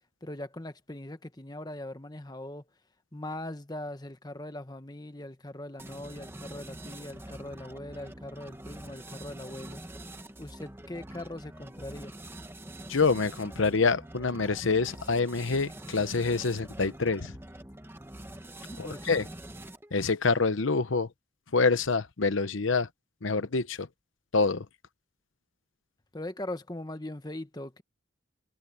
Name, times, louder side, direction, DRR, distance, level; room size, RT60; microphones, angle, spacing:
voice 1, 0.2-2.7 3.1-9.8 10.4-12.1 18.7-19.3 26.1-27.8, left 1 dB, 20° left, 1.2 m, -40 dB
sound 1, 5.8-20.0, right 1 dB, 10° right, 1.0 m, -45 dB
voice 2, 12.9-17.3 18.8-19.2 19.9-21.1 21.5-22.9 23.2-23.9 24.3-24.7, left 4 dB, 75° left, 0.9 m, -26 dB
head